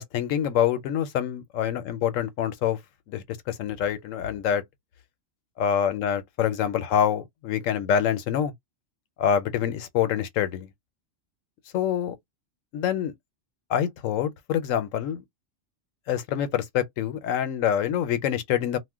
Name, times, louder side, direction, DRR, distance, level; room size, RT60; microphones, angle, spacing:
voice 1, 0.0-2.8 3.1-4.6 5.6-8.5 9.2-10.7 11.7-12.1 12.7-13.1 13.7-15.2 16.1-18.8, left 9 dB, 80° left, 1.0 m, -26 dB
2.4 x 2.1 x 3.5 m
omnidirectional pair, 1.3 m